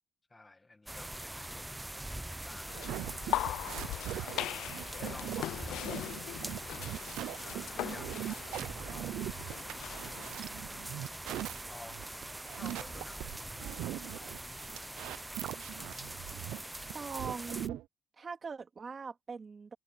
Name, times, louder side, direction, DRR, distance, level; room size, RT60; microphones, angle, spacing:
voice 1, 0.3-2.8 3.3-6.0 6.7-7.0 7.4-9.2 10.1-10.6 11.7-12.1 12.5-13.7, left 2 dB, 15° left, 1.9 m, -54 dB
sound 1, 0.9-17.7, right 1 dB, 10° right, 0.5 m, -43 dB
sound 2, 2.7-10.3, left 14 dB, 80° left, 0.5 m, -40 dB
sound 3, 2.7-17.8, right 14 dB, 80° right, 0.4 m, -41 dB
voice 2, 16.9-17.8 18.2-19.7, right 5 dB, 30° right, 2.9 m, -42 dB
cardioid pair, 115°, 0 cm